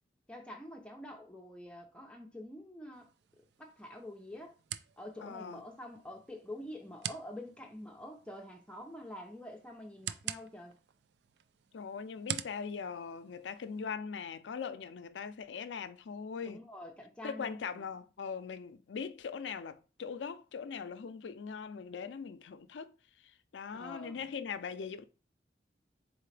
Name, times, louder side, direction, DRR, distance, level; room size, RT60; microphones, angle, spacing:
voice 1, 0.3-3.1 3.6-4.5 5.0-10.7 16.4-17.6 23.7-24.3, left 1 dB, 5° left, 0.6 m, -47 dB
sound 1, 2.9-13.9, right 11 dB, 65° right, 0.3 m, -47 dB
voice 2, 5.2-5.6 11.7-16.6 17.2-22.9 23.5-25.1, left 6 dB, 85° left, 0.4 m, -41 dB
4.0 x 3.8 x 3.2 m
head